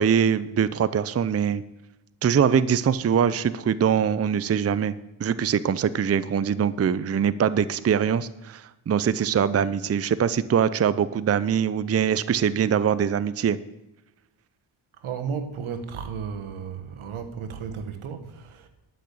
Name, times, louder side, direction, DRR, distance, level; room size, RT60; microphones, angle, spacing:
voice 1, 0.0-1.6 2.2-4.9 5.2-13.6, right 8 dB, 30° right, 15 dB, 0.5 m, -23 dB
voice 2, 15.0-18.7, right 6 dB, 80° right, 8 dB, 1.5 m, -34 dB
11.5 x 6.2 x 8.6 m, 0.95 s
cardioid pair, 70°, 48 cm